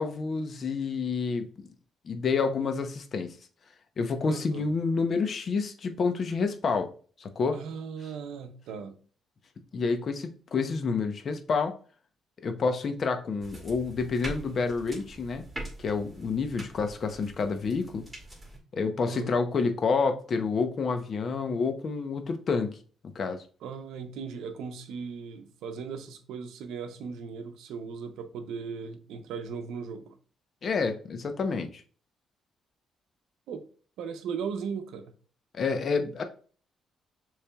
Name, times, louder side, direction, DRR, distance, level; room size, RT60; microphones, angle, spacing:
voice 1, 0.0-1.7 2.0-3.3 4.0-6.9 7.2-7.6 9.7-11.7 12.4-15.4 15.8-18.1 18.7-22.8 23.0-23.4 30.6-31.8 35.5-36.2, left 4 dB, 50° left, 0.7 m, -28 dB
voice 2, 4.2-4.7 7.5-9.0 19.1-19.3 23.6-30.2 33.5-33.6 34.0-35.1, right 6 dB, 85° right, 0.6 m, -37 dB
sound 1, 13.4-18.6, right 1 dB, 15° right, 2.2 m, -43 dB
6.6 x 3.2 x 2.3 m
cardioid pair, 90°, 0 cm